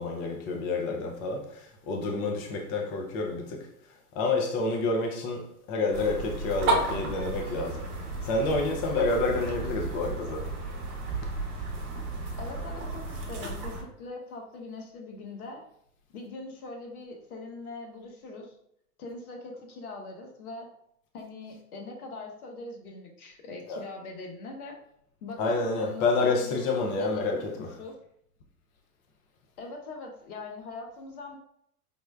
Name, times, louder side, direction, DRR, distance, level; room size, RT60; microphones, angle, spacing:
voice 1, 0.0-3.7 4.1-7.8 8.2-10.5 23.7-23.9 25.4-27.8, left 3 dB, 25° left, 0.4 m, -29 dB
sound 1, 5.9-13.8, right 2 dB, 35° right, 0.9 m, -33 dB
voice 2, 12.4-15.6 16.1-18.5 19.0-20.7 21.1-24.8 25.2-28.0 29.6-31.4, left 3 dB, 65° left, 0.9 m, -42 dB
5.0 x 2.1 x 2.3 m
figure-of-eight pair, 90°, 46 cm